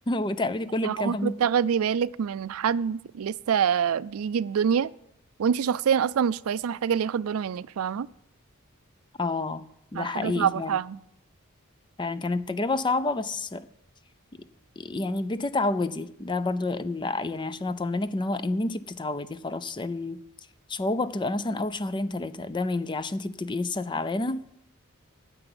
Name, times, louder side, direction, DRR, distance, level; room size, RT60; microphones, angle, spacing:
voice 1, 0.1-1.4 9.2-9.7 9.9-10.8 12.0-13.7 14.3-14.4 14.8-20.2 20.7-24.4, left 2 dB, 20° left, 0.5 m, -29 dB
voice 2, 0.8-4.9 5.4-8.1 9.9-11.0, right 7 dB, 90° right, 0.4 m, -26 dB
9.9 x 6.8 x 8.8 m
head